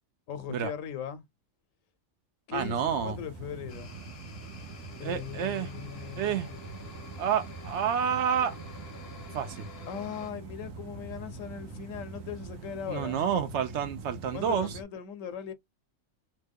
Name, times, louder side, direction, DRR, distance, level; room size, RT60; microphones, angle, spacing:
voice 1, 0.3-1.2 2.5-3.9 5.0-6.6 9.9-13.3 14.3-15.5, left 8 dB, 90° left, 1.1 m, -39 dB
voice 2, 2.5-3.2 5.0-5.7 6.2-6.5 7.2-8.5 9.3-9.7 12.9-14.7, right 8 dB, 70° right, 0.8 m, -29 dB
sound 1, 2.5-14.8, right 3 dB, 85° right, 1.1 m, -44 dB
sound 2, 3.7-10.3, left 4 dB, 55° left, 1.0 m, -49 dB
3.0 x 2.2 x 3.4 m
omnidirectional pair, 1.3 m